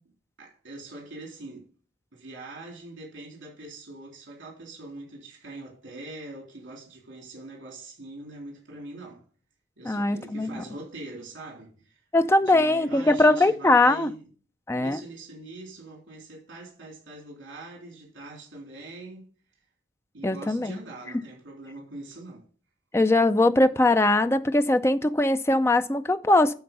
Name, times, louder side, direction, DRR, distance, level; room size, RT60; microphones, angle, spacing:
voice 1, 0.4-1.7 2.1-9.3 9.8-12.0 12.4-14.3 14.8-19.3 20.1-22.5, right 2 dB, 80° right, 3.4 m, -43 dB
voice 2, 9.8-10.6 12.1-14.1 14.7-15.0 20.2-20.8 22.9-26.5, left 2 dB, 15° left, 0.4 m, -21 dB
12.0 x 4.4 x 5.3 m
head